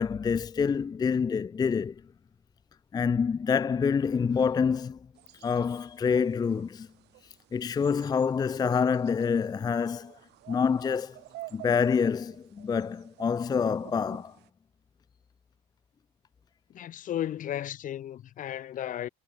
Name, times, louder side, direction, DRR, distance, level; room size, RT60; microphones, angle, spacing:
voice 1, 0.0-2.0 2.9-5.0 5.4-6.9 7.5-10.2 10.5-11.2 11.5-14.4, left 6 dB, 25° left, 0.4 m, -27 dB
sound 1, 5.1-14.5, right 18 dB, 80° right, 1.6 m, -51 dB
voice 2, 16.7-19.1, left 11 dB, 50° left, 0.7 m, -34 dB
cardioid pair, 110°, 17 cm